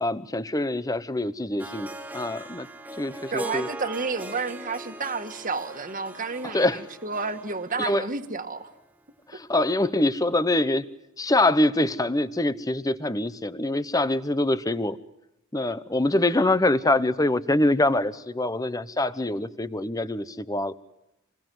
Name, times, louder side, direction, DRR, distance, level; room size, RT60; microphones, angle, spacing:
voice 1, 0.0-2.7 3.0-3.7 6.5-6.8 7.8-8.0 9.3-10.8 11.2-15.0 15.5-20.7, left 1 dB, 15° left, 14 dB, 0.9 m, -24 dB
Harp, 1.6-8.8, right 1 dB, 5° right, 1.0 m, -40 dB
voice 2, 3.3-8.7, right 4 dB, 35° right, 7 dB, 1.7 m, -31 dB
27.5 x 21.5 x 7.8 m, 0.88 s
head